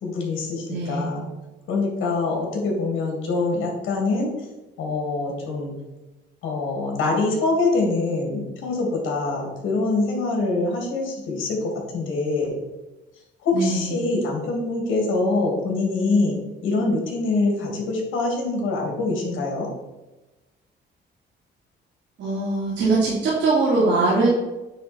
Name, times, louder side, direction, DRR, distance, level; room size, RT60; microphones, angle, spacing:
voice 1, 0.0-1.2 1.7-4.3 4.8-5.7 6.4-11.6 11.9-12.5 13.4-16.4 16.6-19.7, left 3 dB, 80° left, 0 dB, 2.6 m, -24 dB
voice 2, 0.7-1.1 13.5-13.9 22.2-24.3, right 3 dB, 70° right, -8 dB, 2.7 m, -21 dB
9.2 x 3.9 x 4.4 m, 1.1 s
cardioid pair, 90°, 20 cm